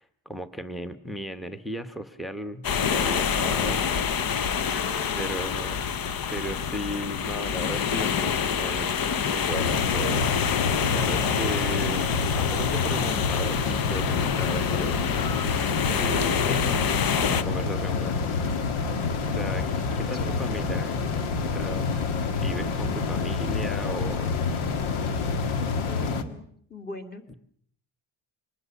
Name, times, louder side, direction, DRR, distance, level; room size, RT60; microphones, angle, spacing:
voice 1, 0.0-3.9 5.2-5.9 6.3-10.6 10.9-12.1 12.3-15.4 15.8-18.4 19.3-19.7 20.0-21.0 21.4-21.9 22.4-24.4 27.3-27.4, equal, ahead, 11 dB, 1.1 m, -36 dB
sound 1, 2.6-17.4, left 7 dB, 45° left, 1.0 m, -27 dB
voice 2, 4.7-5.4 20.1-20.3 25.8-27.4, left 2 dB, 20° left, 6 dB, 2.8 m, -41 dB
sound 2, 9.5-26.2, left 5 dB, 85° left, 1.9 m, -28 dB
24.5 x 20.0 x 7.1 m, 0.64 s
cardioid pair, 125°, 48 cm